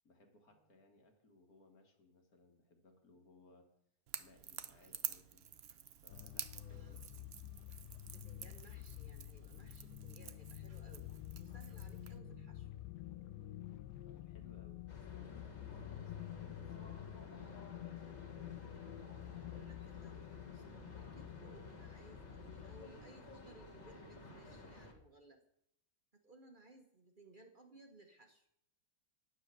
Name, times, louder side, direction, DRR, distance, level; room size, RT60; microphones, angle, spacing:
voice 1, 0.0-3.7 4.2-5.5 6.0-7.3 14.0-14.9 15.1-18.3, left 2 dB, 60° left, 3 dB, 2.2 m, -65 dB
Crackle / Crack, 4.1-12.2, right 9 dB, 60° right, 0.6 m, -49 dB
sound 1, 6.1-22.8, left 13 dB, 90° left, 1.2 m, -49 dB
voice 2, 6.5-7.0 8.1-11.1 11.4-12.7 18.0-18.1 19.1-25.4 26.1-28.6, right 2 dB, 35° right, 3 dB, 1.2 m, -62 dB
sound 2, 14.9-24.9, left 1 dB, 25° left, 1.8 m, -54 dB
9.7 x 9.5 x 6.6 m, 0.73 s
omnidirectional pair, 1.8 m